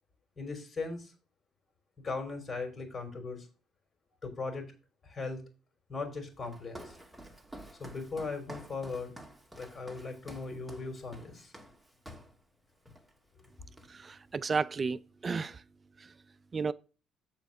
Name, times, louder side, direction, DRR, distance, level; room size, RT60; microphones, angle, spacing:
voice 1, 0.4-1.1 2.0-3.5 4.2-4.7 5.0-5.4 5.9-7.0 7.8-9.1 9.6-11.5, left 3 dB, 35° left, 3.8 m, -38 dB
Walk footsteps, 6.4-12.4 12.9-13.1 13.4-14.2, equal, 5° right, 1.9 m, -50 dB
voice 2, 13.9-15.6 16.0-16.1 16.5-16.7, right 4 dB, 35° right, 0.5 m, -33 dB
7.4 x 4.5 x 6.7 m
supercardioid pair, 80°, 0 cm